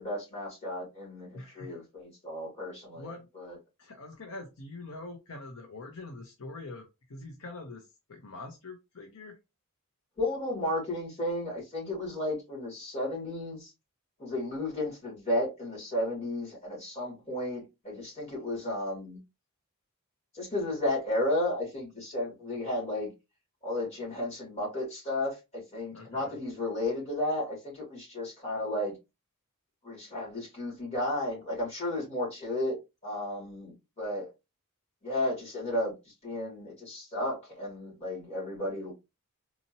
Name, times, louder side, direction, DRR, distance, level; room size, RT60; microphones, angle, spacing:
voice 1, 0.0-3.1 3.4-3.6 10.2-13.7 14.2-19.2 20.3-23.1 23.6-28.9 29.8-32.8 33.0-34.3 35.0-35.9 36.2-38.9, left 1 dB, 30° left, 2.6 m, -33 dB
voice 2, 1.3-1.8 2.9-3.3 3.8-9.4 25.9-26.4, left 2 dB, 65° left, 0.8 m, -44 dB
4.2 x 2.8 x 2.8 m
head